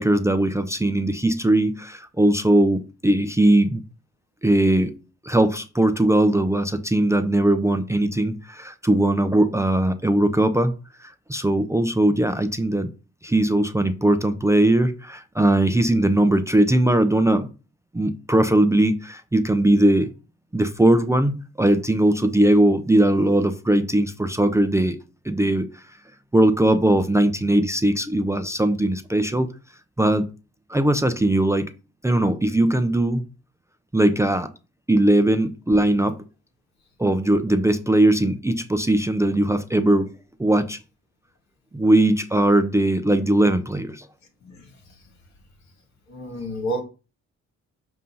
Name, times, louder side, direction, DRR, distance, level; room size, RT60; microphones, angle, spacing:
voice 1, 0.0-3.8 4.4-4.9 5.2-10.7 11.0-12.9 13.2-17.5 17.9-20.1 20.5-25.0 25.2-25.8 26.3-29.5 30.0-30.3 30.7-31.7 32.0-33.3 33.9-34.5 34.9-36.2 37.0-40.1 40.4-40.8 41.7-44.1, right 1 dB, 10° right, 0.5 m, -20 dB
voice 2, 46.1-46.8, right 1 dB, 70° left, 2.1 m, -30 dB
7.4 x 2.7 x 5.4 m
cardioid pair, 95°, 29 cm